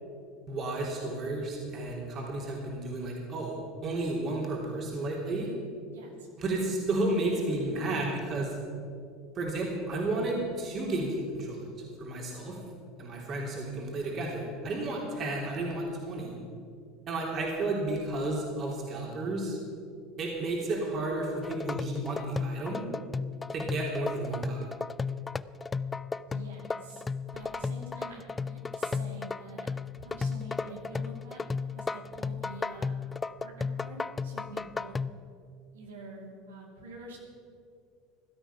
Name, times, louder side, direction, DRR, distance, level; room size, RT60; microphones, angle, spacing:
voice 1, 0.5-3.6 3.8-5.5 6.4-8.5 9.4-11.6 12.0-12.6 13.0-16.4 17.1-19.6 20.2-22.8 23.5-24.6, right 2 dB, 40° right, -2 dB, 3.5 m, -32 dB
voice 2, 5.9-6.3 14.9-15.2 26.3-27.0 27.3-29.7 29.9-33.0 33.4-35.0 35.7-37.2, right 2 dB, 75° right, 0 dB, 2.6 m, -46 dB
sound 1, 21.4-35.1, left 4 dB, 20° left, 0.4 m, -34 dB
16.0 x 12.5 x 5.8 m, 2.4 s
figure-of-eight pair, 70°, 0 cm